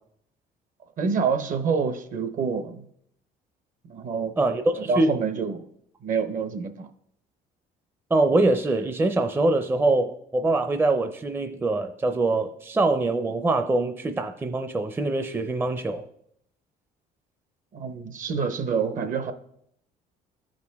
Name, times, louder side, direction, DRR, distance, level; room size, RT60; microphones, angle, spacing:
voice 1, 1.0-2.9 3.9-4.4 4.7-5.6 6.0-6.9 17.7-19.3, right 5 dB, 50° right, 0.8 m, -27 dB
voice 2, 4.4-5.2 8.1-16.0, right 2 dB, 15° right, 0.5 m, -24 dB
14.0 x 5.1 x 3.5 m
cardioid pair, 110°, 17 cm